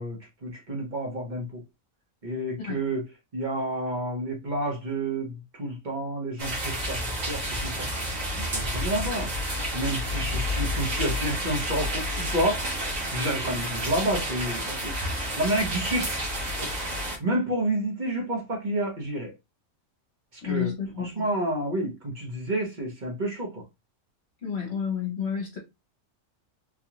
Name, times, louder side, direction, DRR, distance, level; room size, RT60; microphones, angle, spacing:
voice 1, 0.0-1.6 2.2-3.0 3.3-7.9 8.4-9.3 9.7-12.7 13.1-14.9 15.4-16.1 16.6-16.9 17.2-19.3 20.3-20.7 21.0-23.6, right 1 dB, 35° right, 1.1 m, -29 dB
sound 1, 6.4-17.2, equal, 60° right, 1.5 m, -30 dB
voice 2, 20.4-21.2 24.4-25.6, left 8 dB, 50° left, 1.2 m, -30 dB
4.0 x 2.5 x 3.0 m
omnidirectional pair, 1.5 m